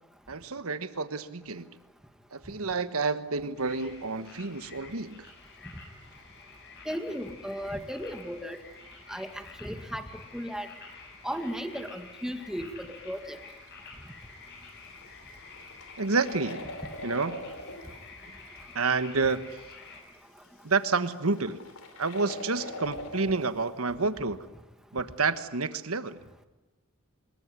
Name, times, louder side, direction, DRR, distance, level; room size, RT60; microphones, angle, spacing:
voice 1, 0.3-1.7 2.3-5.3 16.0-16.8 17.0-17.5 18.7-19.4 20.6-21.6 22.0-24.4 24.9-26.2, right 4 dB, 80° right, 12 dB, 1.4 m, -29 dB
sound 1, 3.6-20.0, left 3 dB, 55° left, 7.0 m, -49 dB
voice 2, 6.9-8.6 9.1-10.1 10.3-10.7 11.2-13.4, equal, 5° right, 7 dB, 2.0 m, -35 dB
sound 2, 13.5-13.7 13.9-14.0 14.8-17.9 18.6-18.7 19.2-19.3 20.4-20.5 20.7-23.5, left 1 dB, 70° left, 4.0 m, -41 dB
25.5 x 21.5 x 9.7 m, 1.1 s
head